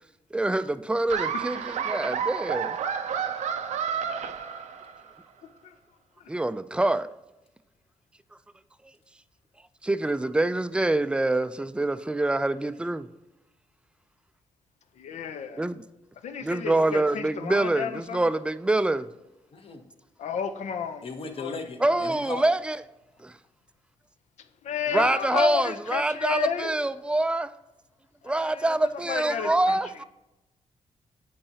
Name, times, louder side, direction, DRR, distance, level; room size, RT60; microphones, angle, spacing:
voice 1, 0.3-2.8 6.3-7.1 9.8-13.1 15.6-15.8 16.4-19.1 21.8-22.8 23.2-23.3 24.9-27.5 28.2-30.0, right 2 dB, 10° right, 0.3 m, -25 dB
Laughter, 1.1-5.1, right 7 dB, 85° right, 0.5 m, -30 dB
voice 2, 15.0-15.6 16.2-18.2 20.2-21.0 21.4-21.6 21.9-22.1 24.6-26.7 28.3-28.7 29.1-29.8, left 7 dB, 80° left, 0.6 m, -31 dB
voice 3, 19.5-19.8 21.0-22.5, left 4 dB, 55° left, 1.0 m, -37 dB
8.6 x 4.7 x 2.8 m
cardioid pair, 100°, 12 cm